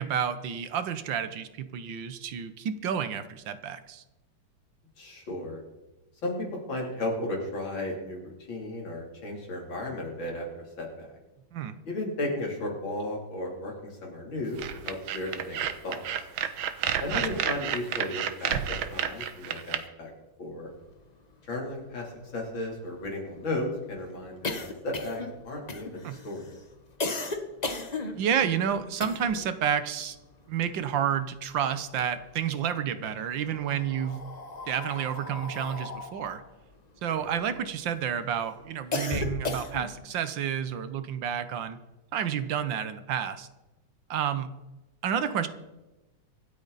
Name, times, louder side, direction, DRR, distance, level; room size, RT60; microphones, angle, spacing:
voice 1, 0.0-4.0 11.5-11.8 17.1-17.3 26.0-26.2 28.1-30.2 30.5-34.2 34.7-36.4 37.0-41.8 42.1-43.5 44.1-44.5 45.0-45.5, right 8 dB, 70° right, 12 dB, 1.6 m, -30 dB
voice 2, 5.0-5.6 6.2-6.4 6.7-11.1 11.9-16.0 17.0-20.1 20.4-20.7 21.4-26.4 37.1-37.3, left 1 dB, 75° left, -1 dB, 4.1 m, -34 dB
sound 1, 14.6-19.8, right 9 dB, 90° right, 1.7 m, -30 dB
sound 2, 21.3-21.4 21.6-21.7 22.1-29.5 29.8-31.4 31.7-32.7 33.4-37.9 38.3-40.1, left 3 dB, 30° left, 0.9 m, -36 dB
25.5 x 8.6 x 4.1 m, 1.1 s
omnidirectional pair, 2.2 m